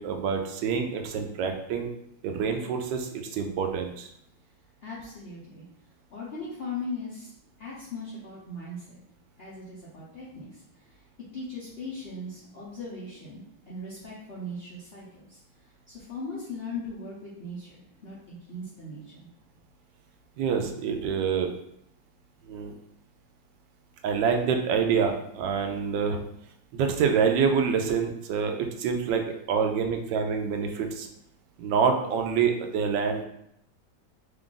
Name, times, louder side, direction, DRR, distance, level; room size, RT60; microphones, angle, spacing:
voice 1, 0.0-1.9 2.2-4.1 20.4-21.5 22.4-22.7 24.0-26.2 26.7-29.2 29.5-31.1 31.6-33.2, right 6 dB, 75° right, 4 dB, 1.1 m, -26 dB
voice 2, 4.8-5.7 6.1-7.3 7.6-9.0 9.4-11.0 11.3-15.4 15.9-17.8 18.0-19.3, left 2 dB, 70° left, -8 dB, 0.5 m, -39 dB
3.3 x 2.4 x 3.7 m, 0.75 s
omnidirectional pair, 2.1 m